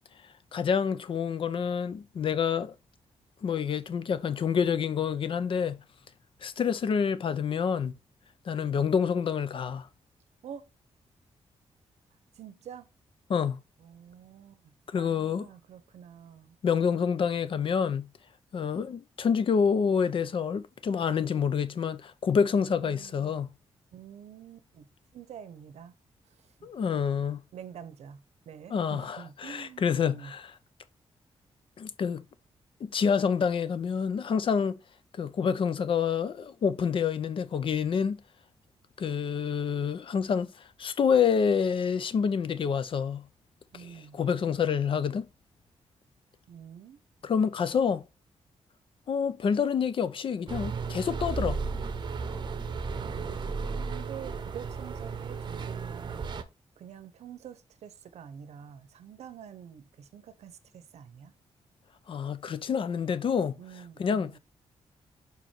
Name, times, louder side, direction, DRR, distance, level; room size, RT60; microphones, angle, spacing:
voice 1, 0.5-2.7 3.4-5.8 6.4-8.0 8.5-9.9 13.3-13.6 14.9-15.5 16.6-18.1 18.5-23.5 26.6-27.4 28.7-29.2 29.4-30.5 31.8-32.2 32.8-34.8 35.2-38.2 39.0-43.3 44.1-45.3 47.2-48.0 49.1-51.6 62.1-63.6 64.0-64.4, left 6 dB, 50° left, 0.6 m, -27 dB
voice 2, 12.3-12.9 13.8-16.6 22.5-23.3 23.9-24.9 25.1-25.9 26.2-26.7 27.5-30.3 43.7-44.2 46.5-47.0 53.7-56.3 56.8-61.3 63.6-64.4, right 8 dB, 85° right, 0.8 m, -47 dB
sound 1, 50.5-56.4, right 4 dB, 45° right, 0.7 m, -34 dB
5.4 x 4.4 x 4.4 m
wide cardioid pair, 130°, 11 cm